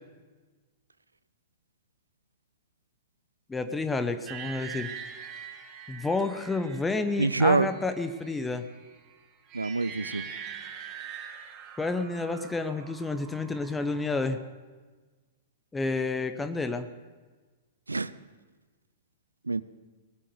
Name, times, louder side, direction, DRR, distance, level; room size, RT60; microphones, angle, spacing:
voice 1, 3.5-4.9 5.9-8.6 11.8-14.4 15.7-16.9, left 3 dB, 10° left, 0.8 m, -30 dB
sound 1, 4.3-14.5, right 7 dB, 30° right, 1.5 m, -44 dB
voice 2, 7.2-7.7 9.5-10.3 17.9-18.1 19.5-19.6, right 3 dB, 80° right, 0.5 m, -25 dB
20.0 x 7.7 x 6.8 m
figure-of-eight pair, 105°, 0 cm